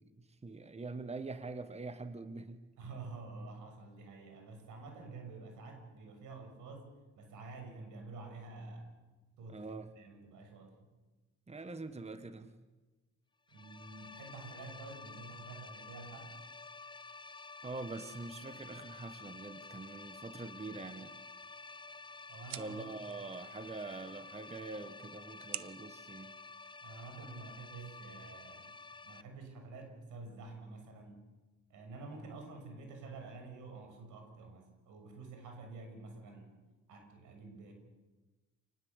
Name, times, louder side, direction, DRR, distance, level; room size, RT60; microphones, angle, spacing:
voice 1, 0.0-2.6 9.5-9.9 11.5-12.5 17.6-21.2 22.5-26.4, right 3 dB, 20° right, 10 dB, 1.6 m, -44 dB
voice 2, 2.8-8.9 9.4-10.7 13.5-16.3 22.3-22.9 26.8-28.7 29.0-31.2 31.7-36.5 36.9-37.7, right 3 dB, 85° right, 5 dB, 6.7 m, -49 dB
sound 1, 13.5-29.2, left 4 dB, 15° left, 0.7 m, -51 dB
sound 2, 21.2-27.2, right 11 dB, 65° right, 1.0 m, -52 dB
28.5 x 19.5 x 8.2 m, 1.2 s
cardioid pair, 90°, 30 cm